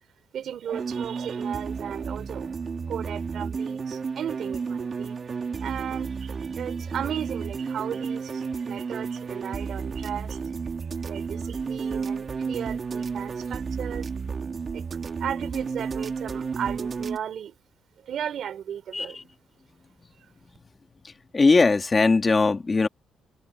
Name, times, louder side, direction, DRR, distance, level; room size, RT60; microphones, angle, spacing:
voice 1, 0.3-2.6 2.9-5.2 5.6-10.4 10.8-14.1 14.7-14.8 15.2-17.5 18.0-19.2 20.2-20.3, right 9 dB, 65° right, 3.6 m, -35 dB
sound 1, 0.7-17.2, right 5 dB, 40° right, 2.3 m, -32 dB
voice 2, 21.3-22.9, left 3 dB, 30° left, 2.0 m, -20 dB
cardioid pair, 90°, 0 cm